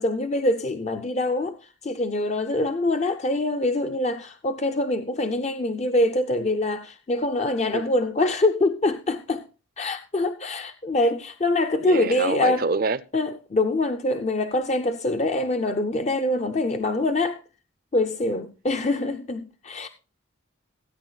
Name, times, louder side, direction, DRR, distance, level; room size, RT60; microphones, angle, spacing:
voice 1, 0.0-9.5 9.8-12.6 13.1-17.4 17.9-19.9, left 2 dB, 35° left, 0.5 m, -24 dB
voice 2, 11.8-13.0, right 4 dB, 45° right, 0.5 m, -26 dB
17.0 x 9.4 x 2.3 m
head